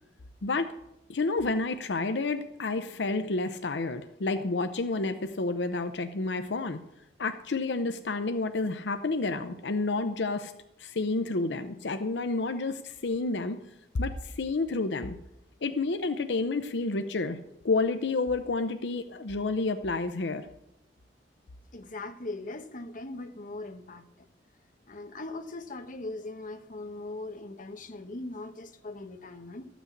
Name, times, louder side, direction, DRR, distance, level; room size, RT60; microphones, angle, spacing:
voice 1, 0.4-0.7 1.1-6.8 7.2-10.5 10.8-13.6 13.9-15.2 15.6-17.4 17.6-20.5, left 3 dB, 85° left, 0.7 m, -30 dB
voice 2, 21.7-24.3 24.9-29.7, left 2 dB, 50° left, 1.0 m, -40 dB
13.5 x 6.1 x 8.3 m
head